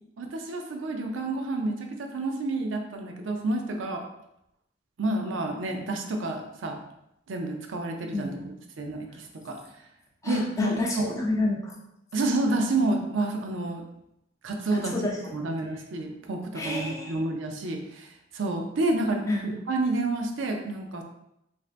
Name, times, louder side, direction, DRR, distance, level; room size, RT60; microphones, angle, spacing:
voice 1, 0.2-4.0 5.0-6.8 7.3-9.6 10.2-11.0 12.1-13.8 14.4-14.9 15.3-18.1 18.3-21.0, right 2 dB, 70° right, 3 dB, 0.5 m, -29 dB
voice 2, 8.1-8.5 9.1-9.2 10.2-11.7 14.7-15.5 16.5-17.2 19.3-19.4, left 2 dB, 15° left, -2 dB, 0.5 m, -29 dB
3.2 x 2.6 x 2.5 m, 0.83 s
head